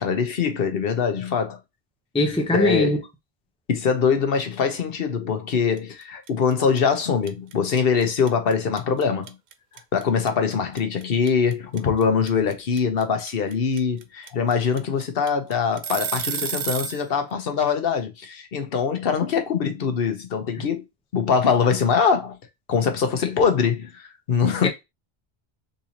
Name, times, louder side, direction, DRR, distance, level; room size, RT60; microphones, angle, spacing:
voice 1, 0.0-1.6 2.5-3.0 3.7-9.3 9.9-20.8 21.1-22.3 22.7-24.7, left 6 dB, 65° left, 1.0 m, -23 dB
voice 2, 2.1-3.0 24.6-24.7, left 1 dB, 5° left, 0.5 m, -21 dB
sound 1, 5.8-6.0 6.3-17.0, right 7 dB, 55° right, 0.6 m, -31 dB
3.9 x 2.7 x 2.8 m
omnidirectional pair, 1.1 m